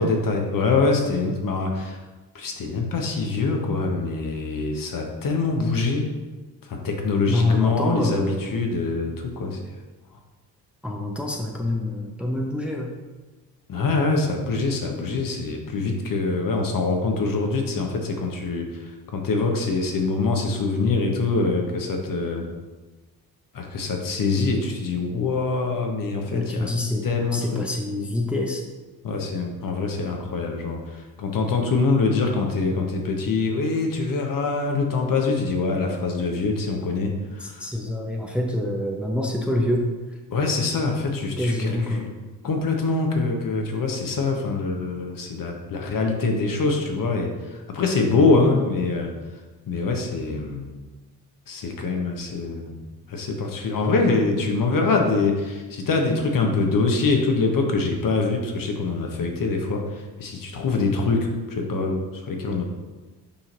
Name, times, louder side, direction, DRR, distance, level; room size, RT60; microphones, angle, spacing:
voice 1, 0.0-2.0 2.3-6.1 6.7-9.6 13.7-18.7 19.1-22.4 23.5-26.7 27.0-27.6 29.0-37.6 40.3-42.1 42.4-49.1 49.7-50.7 51.5-52.7 53.1-59.8 60.2-62.6, left 3 dB, 45° left, 2 dB, 1.2 m, -24 dB
voice 2, 7.3-8.5 10.8-12.9 26.3-27.0 27.3-28.6 37.4-39.9 41.4-42.1, left 1 dB, ahead, 1 dB, 0.9 m, -26 dB
7.0 x 5.6 x 2.7 m, 1.3 s
figure-of-eight pair, 40°, 49 cm